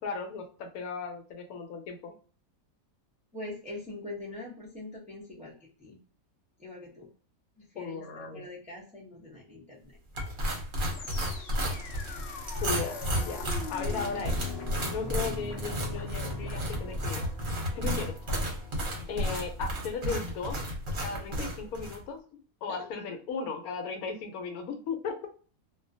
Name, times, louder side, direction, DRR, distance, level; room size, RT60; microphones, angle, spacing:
voice 1, 0.0-2.1 7.7-8.4 12.6-14.4 14.8-17.3 17.7-18.1 19.1-20.6 21.0-22.2 22.6-25.3, left 5 dB, 80° left, 5 dB, 1.1 m, -36 dB
voice 2, 3.3-5.5 5.8-6.0 6.6-7.1 7.6-8.0 8.3-10.0 17.8-18.1 21.4-21.5 22.7-22.8, left 2 dB, 10° right, -3 dB, 0.5 m, -42 dB
sound 1, 10.2-22.0, equal, 45° right, 0.7 m, -33 dB
sound 2, 10.9-20.1, left 3 dB, 65° left, 0.7 m, -42 dB
2.4 x 2.1 x 2.5 m, 0.41 s
omnidirectional pair, 1.5 m